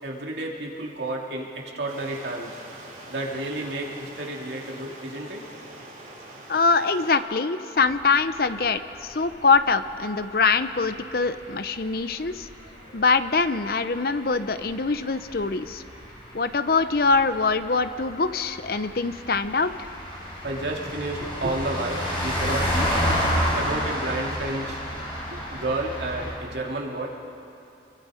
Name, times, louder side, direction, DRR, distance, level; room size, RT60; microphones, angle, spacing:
voice 1, 0.0-2.6 3.1-5.5 12.8-13.0 20.4-23.0 23.3-24.9 25.3-27.1, right 2 dB, 70° right, -1 dB, 2.7 m, -31 dB
Stream, 1.9-7.2, right 1 dB, 45° right, 6.0 m, -44 dB
voice 2, 6.5-12.5 12.9-15.8 16.3-19.9, left 4 dB, 55° left, 11 dB, 0.7 m, -23 dB
sound 1, 7.8-26.3, equal, 30° left, 5.2 m, -31 dB
28.0 x 22.5 x 5.1 m, 2.7 s
head